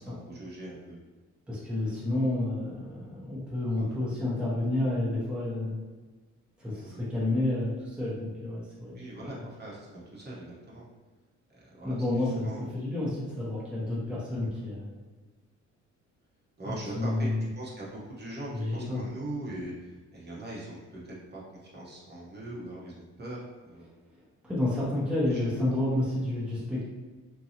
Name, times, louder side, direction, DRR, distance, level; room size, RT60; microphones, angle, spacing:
voice 1, 0.0-1.0 3.8-4.0 6.7-7.0 8.9-10.8 11.5-12.7 16.6-17.3 17.6-23.9 25.3-25.5, right 1 dB, 35° right, -6 dB, 0.9 m, -41 dB
voice 2, 1.5-5.9 6.6-8.9 9.2-9.4 11.8-12.5 12.7-14.9 16.6-17.5 18.5-19.0 24.4-26.8, left 1 dB, 5° right, -7 dB, 0.8 m, -30 dB
2.7 x 2.2 x 2.8 m, 1.3 s
cardioid pair, 90°, 30 cm